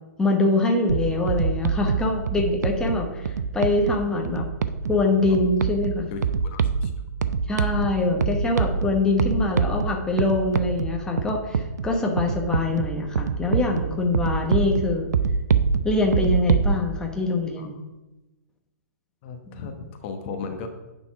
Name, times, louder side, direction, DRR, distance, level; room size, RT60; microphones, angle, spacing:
voice 1, 0.2-4.5 4.9-6.1 7.5-15.1 15.8-17.8, left 2 dB, 5° left, 1 dB, 1.1 m, -24 dB
sound 1, 0.9-16.7, right 6 dB, 70° right, 0.6 m, -26 dB
voice 2, 6.1-6.9 17.6-17.7 19.2-20.7, left 4 dB, 40° left, 5 dB, 1.0 m, -36 dB
9.5 x 4.2 x 5.9 m, 1.1 s
figure-of-eight pair, 125°, 10 cm